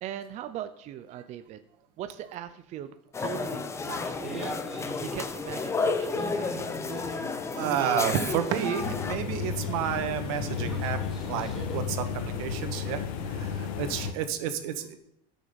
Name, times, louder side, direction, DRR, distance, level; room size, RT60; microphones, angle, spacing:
voice 1, 0.0-1.6 2.0-4.6 5.0-6.6, right 11 dB, 40° right, 9 dB, 0.7 m, -40 dB
sound 1, 3.1-9.2, left 4 dB, 15° left, 0.7 m, -32 dB
sound 2, 3.8-11.8, right 1 dB, ahead, 2.9 m, -41 dB
voice 2, 7.5-11.0 11.3-13.0 13.3-15.0, right 9 dB, 90° right, 8 dB, 1.6 m, -31 dB
sound 3, 8.8-14.1, left 6 dB, 85° left, 1.5 m, -33 dB
14.5 x 6.2 x 7.0 m, 0.75 s
cardioid pair, 160°, 18 cm